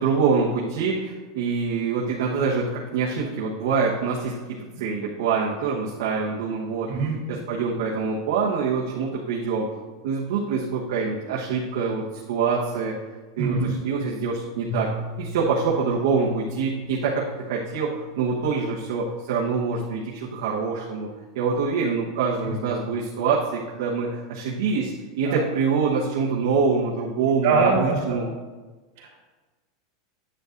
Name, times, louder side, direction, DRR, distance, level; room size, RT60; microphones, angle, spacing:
voice 1, 0.0-9.7 10.0-13.0 13.4-14.9 15.2-21.1 21.3-28.3, right 5 dB, 75° right, -5 dB, 1.2 m, -25 dB
voice 2, 13.4-13.7 22.4-22.5 25.2-25.4 27.4-28.2 29.0-29.1, right 4 dB, 55° right, -6 dB, 2.9 m, -23 dB
Piano, 14.7-20.3, left 1 dB, 65° left, 2.7 m, -39 dB
10.0 x 7.9 x 2.6 m, 1.3 s
supercardioid pair, 175°, 2 cm